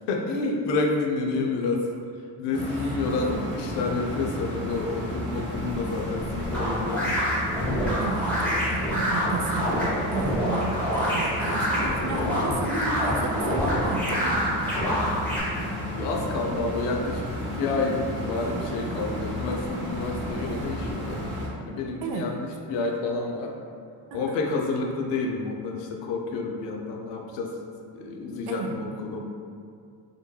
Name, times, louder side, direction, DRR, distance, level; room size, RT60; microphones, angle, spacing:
voice 1, 0.1-1.9 2.4-7.1 16.0-21.2 21.6-22.4 22.7-23.5 24.1-27.6 27.9-29.3, left 3 dB, 70° left, 1 dB, 0.5 m, -29 dB
sound 1, 2.5-21.5, equal, 25° right, 0.7 m, -33 dB
sound 2, 6.5-15.4, equal, 5° left, 0.9 m, -26 dB
voice 2, 8.0-14.5 22.0-22.3 24.1-24.4 28.5-28.7, right 3 dB, 60° right, 3 dB, 0.5 m, -33 dB
2.2 x 2.1 x 3.1 m, 2.3 s
supercardioid pair, 60°, 45 cm